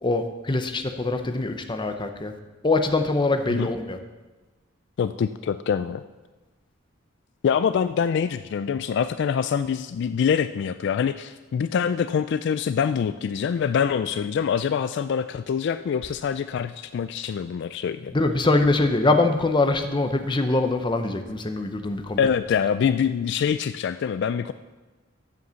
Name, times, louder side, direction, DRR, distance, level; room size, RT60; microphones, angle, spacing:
voice 1, 0.0-2.3 2.6-4.0 18.1-22.2, left 2 dB, 25° left, 6 dB, 0.8 m, -23 dB
voice 2, 5.0-6.0 7.4-18.1 22.2-24.5, left 7 dB, 60° left, 12 dB, 0.3 m, -25 dB
7.9 x 7.9 x 6.9 m, 1.2 s
head